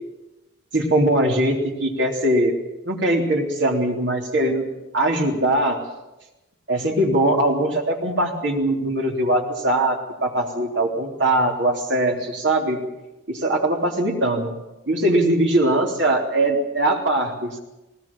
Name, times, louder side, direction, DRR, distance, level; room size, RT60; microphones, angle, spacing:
voice 1, 0.7-2.6 2.9-4.7 4.9-5.8 6.7-12.8 13.3-14.5 14.9-17.6, right 1 dB, 60° right, 0 dB, 3.5 m, -21 dB
19.5 x 19.0 x 7.5 m, 1.0 s
head